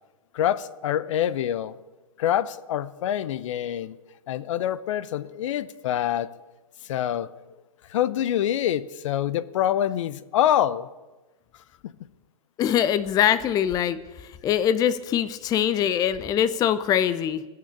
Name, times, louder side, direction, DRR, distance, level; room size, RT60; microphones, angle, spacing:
voice 1, 0.3-1.8 2.2-4.0 4.3-6.3 6.8-7.3 7.9-10.9, left 11 dB, 60° left, 17 dB, 0.7 m, -25 dB
voice 2, 12.6-17.5, left 10 dB, 20° left, 14 dB, 0.5 m, -23 dB
19.0 x 6.8 x 9.9 m, 1.2 s
hypercardioid pair, 125°, 18 cm